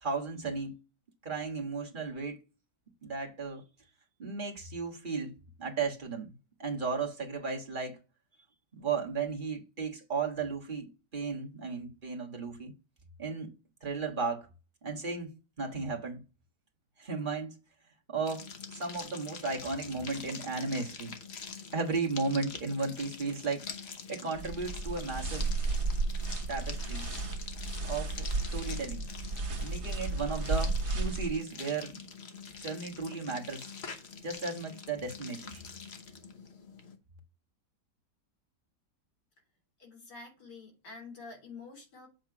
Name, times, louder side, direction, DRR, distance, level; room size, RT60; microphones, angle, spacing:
voice 1, 0.0-0.8 1.2-2.4 3.0-3.6 4.2-6.3 6.6-8.0 8.7-12.7 13.2-13.5 13.8-14.5 14.8-16.2 17.0-17.6 18.1-18.4 18.7-21.1 21.7-23.6 24.1-25.5 26.5-27.1 27.8-29.0 29.6-32.1 32.6-33.6 34.2-35.6, right 4 dB, 30° right, 1.7 m, -35 dB
sound 1, 18.3-37.0, left 5 dB, 45° left, 1.1 m, -45 dB
sound 2, 24.4-31.3, right 3 dB, 55° right, 1.7 m, -33 dB
voice 2, 39.8-42.1, left 4 dB, 80° left, 3.8 m, -48 dB
7.8 x 3.4 x 4.7 m
omnidirectional pair, 1.8 m